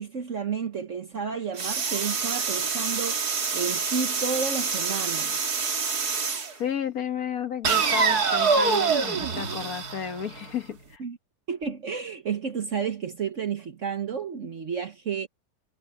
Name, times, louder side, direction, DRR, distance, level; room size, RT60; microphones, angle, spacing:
voice 1, 0.0-3.2 3.5-5.4 11.0-11.2 11.5-15.3, right 6 dB, 50° right, 1.4 m, -31 dB
sound 1, 1.6-6.5 7.6-10.6, right 5 dB, 70° right, 2.5 m, -26 dB
voice 2, 6.6-11.0, left 8 dB, 65° left, 1.7 m, -32 dB
omnidirectional pair, 1.7 m